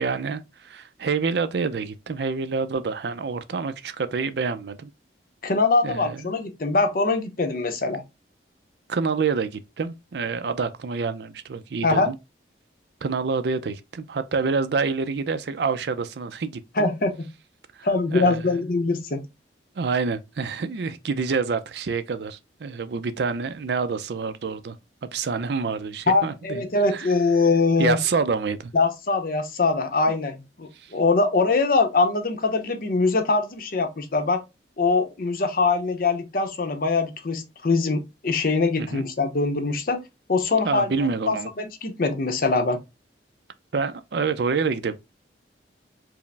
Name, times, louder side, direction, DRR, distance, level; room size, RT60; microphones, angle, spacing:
voice 1, 0.0-4.9 5.8-6.4 8.9-12.2 13.0-16.9 17.8-18.4 19.8-24.8 25.0-27.1 27.8-28.7 30.1-30.2 30.8-30.9 38.8-39.0 40.6-41.5 43.7-45.0, right 5 dB, 70° right, 0.4 m, -27 dB
voice 2, 5.4-8.0 11.8-12.1 16.8-17.1 17.8-19.2 26.1-28.0 28.7-34.4 34.8-40.0 40.3-42.8, left 3 dB, 50° left, 0.7 m, -23 dB
4.7 x 2.0 x 3.2 m
head